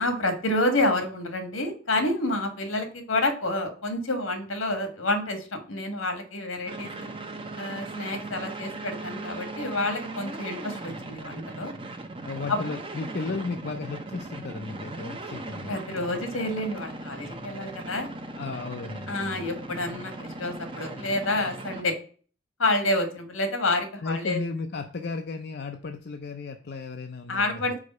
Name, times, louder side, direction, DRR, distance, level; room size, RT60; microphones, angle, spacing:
voice 1, 0.0-7.1 7.6-11.7 12.5-12.6 15.7-18.1 19.1-22.0 22.6-24.4 27.3-27.8, left 2 dB, 85° left, 6 dB, 1.5 m, -28 dB
sound 1, 6.7-21.8, right 2 dB, 25° right, 0.7 m, -38 dB
voice 2, 12.2-15.7 18.4-19.4 24.0-27.6, left 3 dB, 50° left, 5 dB, 0.5 m, -34 dB
4.9 x 4.7 x 5.3 m, 0.40 s
head